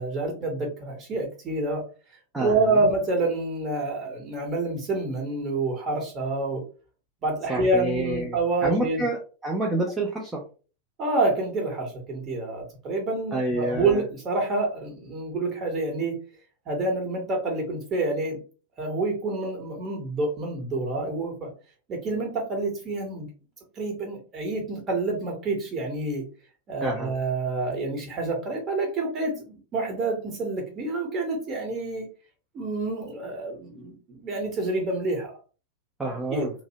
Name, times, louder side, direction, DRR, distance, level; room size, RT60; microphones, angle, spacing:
voice 1, 0.0-1.8 2.4-6.6 7.2-9.0 11.0-16.2 16.7-18.4 18.8-21.5 21.9-23.3 23.8-26.2 26.7-32.1 32.5-35.3 36.3-36.5, right 2 dB, 30° right, 1 dB, 1.0 m, -27 dB
voice 2, 2.3-2.9 7.5-8.4 8.6-10.4 13.3-14.0 26.8-27.1 36.0-36.5, right 1 dB, 10° right, -2 dB, 0.5 m, -28 dB
2.7 x 2.0 x 2.7 m, 0.36 s
figure-of-eight pair, 90°, 0 cm